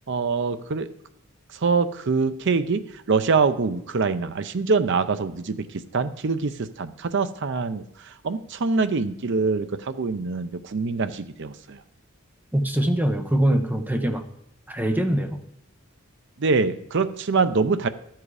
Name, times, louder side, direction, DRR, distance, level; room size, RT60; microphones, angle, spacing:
voice 1, 0.1-0.9 1.6-2.8 3.1-5.7 5.9-7.8 8.2-11.8 16.4-17.9, right 4 dB, 60° right, 11 dB, 0.6 m, -24 dB
voice 2, 12.5-14.2 14.7-15.4, right 1 dB, 10° right, 5 dB, 0.9 m, -23 dB
12.0 x 7.6 x 4.8 m, 0.79 s
head